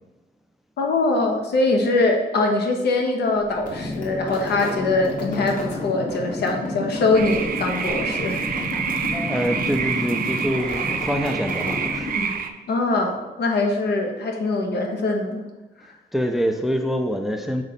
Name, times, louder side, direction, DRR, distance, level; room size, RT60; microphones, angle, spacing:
voice 1, 0.8-8.7 12.7-15.5, left 2 dB, 75° left, 2 dB, 1.0 m, -22 dB
sound 1, 3.5-12.5, left 2 dB, 50° left, 1.4 m, -31 dB
sound 2, 7.1-12.5, right 6 dB, 55° right, 0.5 m, -28 dB
voice 2, 9.1-12.1 16.1-17.6, equal, ahead, 5 dB, 0.4 m, -25 dB
6.2 x 4.0 x 4.1 m, 1.1 s
cardioid pair, 130°, 17 cm